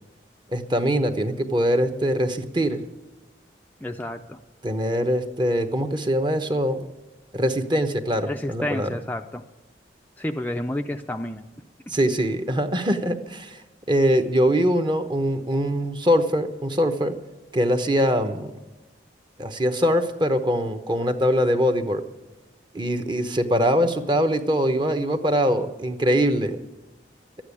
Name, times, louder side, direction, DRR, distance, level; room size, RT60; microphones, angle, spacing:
voice 1, 0.5-2.8 4.6-6.8 7.3-8.9 11.9-13.6 13.9-17.2 17.5-18.5 19.4-22.0 22.7-26.6, equal, 25° right, 7 dB, 0.9 m, -22 dB
voice 2, 3.8-4.4 8.3-9.4 10.2-11.4 11.9-12.0, left 1 dB, 10° left, 4 dB, 0.5 m, -30 dB
12.0 x 8.8 x 9.8 m, 1.1 s
head